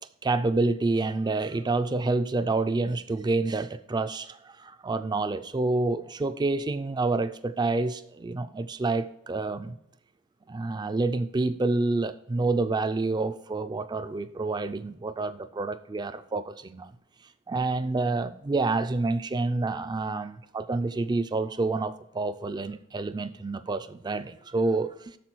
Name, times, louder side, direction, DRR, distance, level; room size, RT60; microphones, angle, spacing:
voice 1, 0.2-9.8 10.5-16.9 17.5-25.2, right 3 dB, 20° right, 0.3 m, -28 dB
8.3 x 6.4 x 4.5 m
head